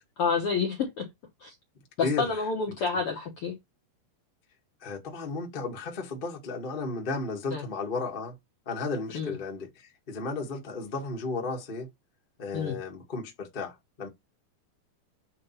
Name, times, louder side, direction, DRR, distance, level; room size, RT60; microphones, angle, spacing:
voice 1, 0.2-1.1 1.4-1.5 2.0-3.5 7.5-7.7 9.1-9.4 12.5-12.8, left 5 dB, 70° left, 1.3 m, -29 dB
voice 2, 2.0-2.3 4.8-8.3 8.6-11.9 12.4-14.1, left 3 dB, 50° left, 0.6 m, -34 dB
8.4 x 3.0 x 5.6 m
omnidirectional pair, 4.3 m